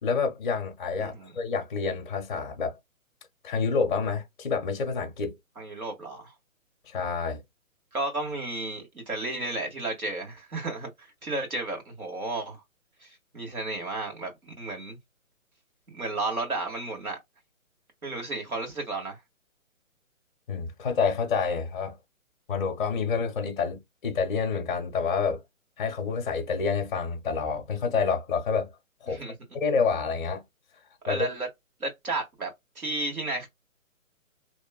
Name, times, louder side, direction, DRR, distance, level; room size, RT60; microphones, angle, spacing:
voice 1, 0.0-2.8 3.4-5.4 6.9-7.4 20.5-22.0 22.5-25.4 25.8-28.7 29.0-29.2 29.5-30.4 31.1-31.3, left 5 dB, 35° left, 0.6 m, -28 dB
voice 2, 1.0-1.3 5.6-6.3 7.9-12.6 13.0-15.0 15.9-17.2 18.0-19.2 29.1-29.3 31.0-31.5 31.8-33.5, right 2 dB, 90° right, 1.7 m, -33 dB
2.9 x 2.3 x 2.2 m
figure-of-eight pair, 140°, 41 cm